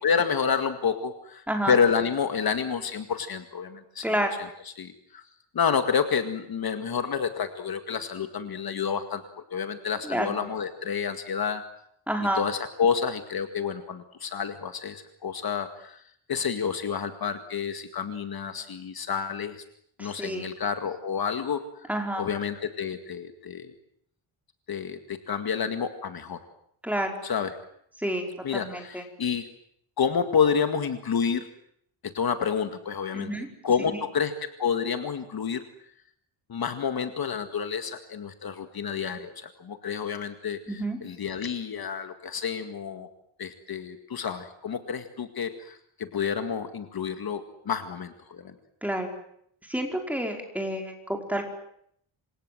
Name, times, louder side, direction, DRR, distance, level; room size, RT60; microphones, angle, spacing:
voice 1, 0.0-4.1 4.8-5.2 5.5-9.2 9.5-11.6 12.4-16.0 16.3-19.6 20.0-21.6 22.2-23.7 24.7-26.4 27.2-27.6 28.4-29.5 30.0-31.4 32.1-33.3 33.6-35.6 36.5-43.1 43.4-48.5, left 6 dB, 45° left, 8 dB, 2.0 m, -29 dB
voice 2, 4.0-4.4 10.0-10.4 12.1-12.4 20.0-20.5 21.9-22.3 26.8-27.1 28.0-28.3 28.5-29.0 33.1-33.5 33.9-34.0 40.7-41.0 48.8-49.1 49.7-51.5, right 1 dB, 5° right, 3 dB, 5.1 m, -29 dB
28.0 x 26.5 x 7.9 m, 0.70 s
wide cardioid pair, 155°, 49 cm